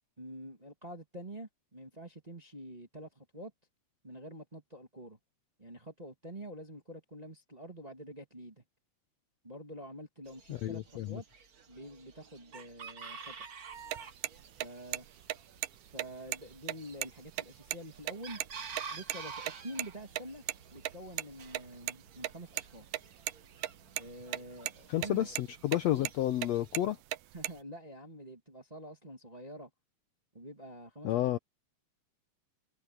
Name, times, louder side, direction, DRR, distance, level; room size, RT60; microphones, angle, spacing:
voice 1, 0.2-3.5 4.0-5.2 5.6-8.6 9.4-11.2 11.7-13.3 14.6-15.1 15.9-18.4 18.9-20.4 20.7-22.8 24.0-25.3 27.3-29.7 30.3-31.1, right 1 dB, 15° right, 1.4 m, -47 dB
Chicken rooster, 10.2-26.8, right 5 dB, 50° right, 1.1 m, -50 dB
voice 2, 10.5-11.2 24.9-27.0 31.0-31.4, left 13 dB, 75° left, 1.6 m, -31 dB
sound 1, 13.8-18.8 19.1-19.2 19.5-19.6 19.8-19.9 20.2-20.3 20.5-20.6 20.9-21.9 22.2-22.7 22.9-23.7 24.0-24.4 24.7-25.1 25.4-25.5 25.7-26.1 26.4-27.6, right 15 dB, 85° right, 2.4 m, -35 dB
omnidirectional pair, 3.8 m